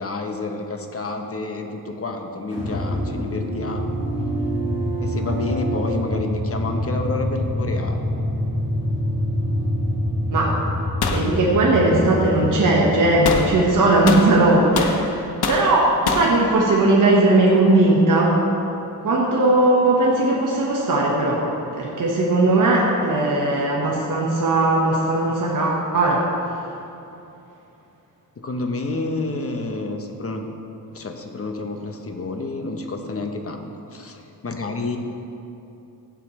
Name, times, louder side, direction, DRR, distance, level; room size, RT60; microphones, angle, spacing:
voice 1, 0.0-4.0 5.0-8.0 28.4-30.5 30.9-35.0, left 2 dB, 35° left, 4 dB, 0.9 m, -29 dB
sound 1, 2.5-14.7, equal, 15° right, 2.4 m, -26 dB
voice 2, 10.3-10.7 11.1-18.4 19.0-21.5 21.7-26.3, right 2 dB, 55° right, -4 dB, 1.4 m, -18 dB
sound 2, 11.0-11.3 13.2-13.5 14.1-15.0 15.4-15.7 16.1-16.3, left 5 dB, 75° left, 0.9 m, -24 dB
15.5 x 7.8 x 3.2 m, 2.8 s
wide cardioid pair, 125°, 38 cm